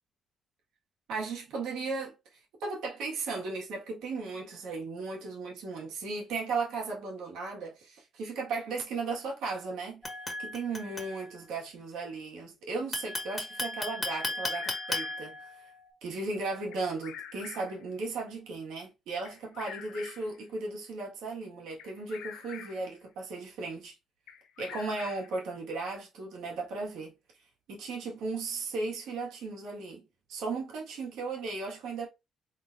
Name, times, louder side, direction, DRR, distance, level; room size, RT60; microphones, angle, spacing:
voice 1, 1.1-10.0 10.4-15.5 16.0-24.0 24.6-27.1 27.7-32.1, right 3 dB, 85° right, 1.9 m, -36 dB
wine glass spoon wooden stick, 10.0-11.5 12.9-15.9, left 2 dB, 15° left, 1.7 m, -36 dB
Bird vocalization bird call bird song, 14.2-15.4 16.7-17.8 19.2-20.4 21.8-22.9 24.3-25.4, left 8 dB, 85° left, 0.7 m, -46 dB
3.9 x 3.8 x 2.7 m
cardioid pair, 90°, 0 cm